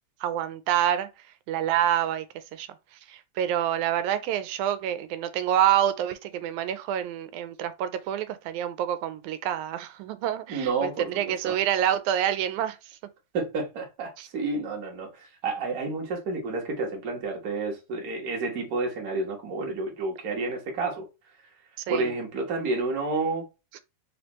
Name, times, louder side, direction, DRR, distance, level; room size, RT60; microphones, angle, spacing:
voice 1, 0.2-1.1 1.5-2.3 2.5-2.7 3.1-12.8 14.2-14.3 21.9-22.1, right 10 dB, 85° right, 1.9 m, -27 dB
voice 2, 10.5-11.5 13.3-21.0 21.9-23.4, right 3 dB, 45° right, 1.2 m, -30 dB
4.6 x 3.3 x 3.0 m
omnidirectional pair, 3.4 m